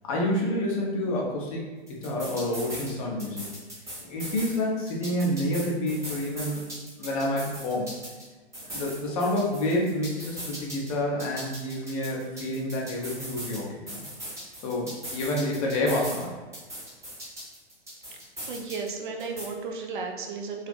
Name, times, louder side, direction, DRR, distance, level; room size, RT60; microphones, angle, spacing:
voice 1, 0.0-3.5 4.0-6.6 7.0-7.9 8.7-14.0 14.6-16.4, left 1 dB, 30° left, -2 dB, 0.5 m, -28 dB
sound 1, 1.9-2.9 3.2-4.6 4.9-8.2 8.5-10.9 11.2-13.6 13.9-16.2 16.5-18.9 19.2-19.4, equal, 10° right, 0.7 m, -39 dB
voice 2, 18.4-20.7, right 4 dB, 45° right, 3 dB, 0.4 m, -34 dB
2.5 x 2.4 x 2.3 m, 1.3 s
figure-of-eight pair, 115°, 34 cm